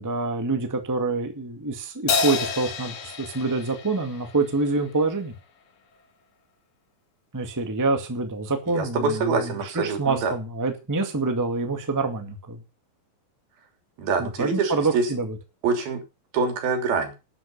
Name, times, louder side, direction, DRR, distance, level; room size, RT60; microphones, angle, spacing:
voice 1, 0.0-5.3 7.3-12.6 14.2-15.3, right 3 dB, 10° right, 5 dB, 1.2 m, -26 dB
Crash cymbal, 2.1-4.8, left 5 dB, 60° left, 3.3 m, -29 dB
voice 2, 8.7-10.3 14.0-15.1 15.6-16.0 16.3-17.1, right 4 dB, 85° right, 5 dB, 5.1 m, -25 dB
12.5 x 9.8 x 5.6 m, 0.29 s
omnidirectional pair, 4.2 m